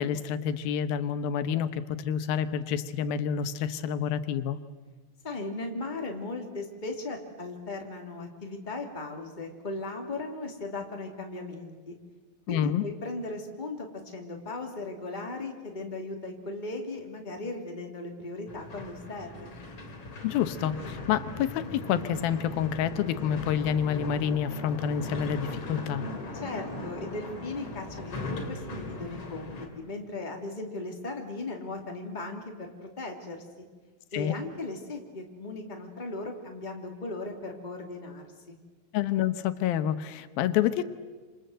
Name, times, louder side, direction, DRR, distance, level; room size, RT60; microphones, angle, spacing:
voice 1, 0.0-4.6 12.5-12.8 20.2-26.1 34.1-34.3 38.9-40.8, left 9 dB, 90° left, 11 dB, 2.9 m, -28 dB
voice 2, 5.2-11.9 12.5-13.9 14.1-19.5 26.4-33.4 34.1-38.6, left 2 dB, 15° left, 2 dB, 2.7 m, -37 dB
sound 1, 18.5-29.7, left 2 dB, 40° left, 4.0 m, -39 dB
27.5 x 27.5 x 7.9 m, 1.3 s
omnidirectional pair, 4.1 m